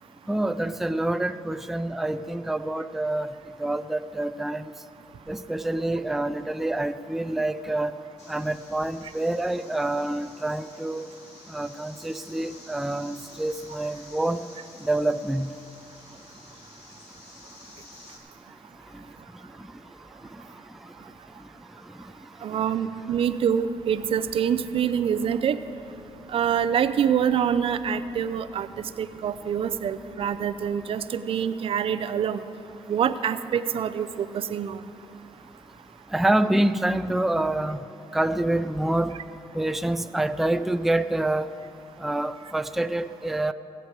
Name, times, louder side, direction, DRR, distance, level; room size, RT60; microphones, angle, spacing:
voice 1, 0.3-3.3 3.6-4.7 5.3-7.9 8.3-11.1 11.5-14.4 14.8-15.5 36.1-37.8 38.1-39.1 39.5-41.5 42.0-43.5, right 1 dB, ahead, 11 dB, 0.4 m, -26 dB
sound 1, 8.2-18.2, left 3 dB, 80° left, 1.9 m, -50 dB
voice 2, 22.4-25.6 26.3-28.7 29.0-32.4 32.9-34.8, right 8 dB, 60° right, 12 dB, 0.5 m, -25 dB
sound 2, 23.3-30.8, left 3 dB, 65° left, 2.0 m, -52 dB
19.0 x 8.1 x 4.7 m, 2.7 s
cardioid pair, 80°, 11 cm